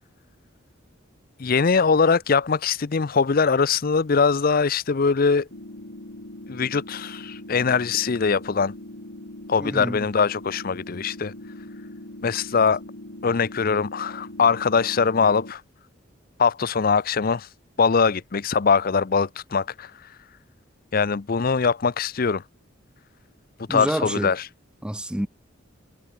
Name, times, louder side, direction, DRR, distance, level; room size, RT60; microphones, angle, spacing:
voice 1, 1.4-5.5 6.5-8.7 9.5-11.3 12.2-12.8 13.2-15.6 16.4-17.5 17.8-20.1 20.9-22.4 23.7-24.5, left 5 dB, 45° left, 0.6 m, -22 dB
sound 1, 5.5-15.5, left 1 dB, 70° left, 3.3 m, -41 dB
voice 2, 9.6-10.0 23.7-24.3 24.8-25.3, equal, 5° right, 0.5 m, -28 dB
head